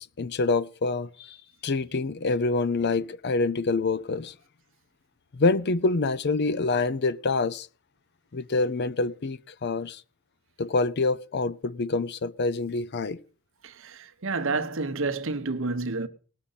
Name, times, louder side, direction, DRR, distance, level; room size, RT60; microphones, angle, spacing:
voice 1, 0.0-1.4 1.6-4.3 5.3-7.7 8.3-10.0 10.6-13.2, left 3 dB, 50° left, 0.5 m, -26 dB
voice 2, 13.6-16.1, right 3 dB, 65° right, 1.0 m, -29 dB
19.0 x 6.5 x 5.6 m
head